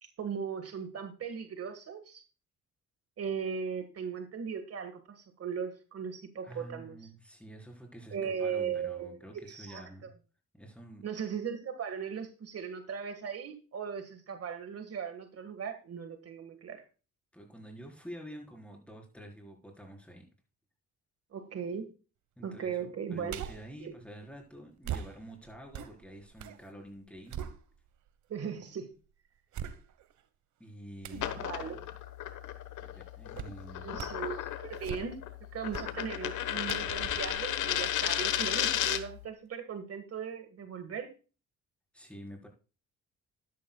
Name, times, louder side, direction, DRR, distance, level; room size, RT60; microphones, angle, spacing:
voice 1, 0.0-2.2 3.2-7.0 8.1-9.8 11.0-16.8 21.3-21.9 22.4-23.4 23.8-23.9 28.3-28.9 31.4-31.8 33.8-35.2 35.5-41.1, right 7 dB, 50° right, 7 dB, 1.7 m, -38 dB
voice 2, 6.4-10.1 10.5-11.1 17.3-20.3 22.4-27.5 30.6-31.8 32.8-34.1 41.9-42.5, right 1 dB, 5° left, 1 dB, 4.3 m, -48 dB
sound 1, 23.3-23.8 24.8-26.6 27.0-28.1 28.6-28.7 29.5-30.2 31.0-31.3 33.4-33.6 33.9-34.3 34.7-35.3 35.7-36.0 36.7-38.3 38.7-38.8, right 9 dB, 75° right, 1.2 m, -42 dB
sound 2, 31.1-39.2, left 11 dB, 80° left, 1.3 m, -34 dB
12.5 x 11.0 x 2.3 m, 0.34 s
cardioid pair, 90°, 30 cm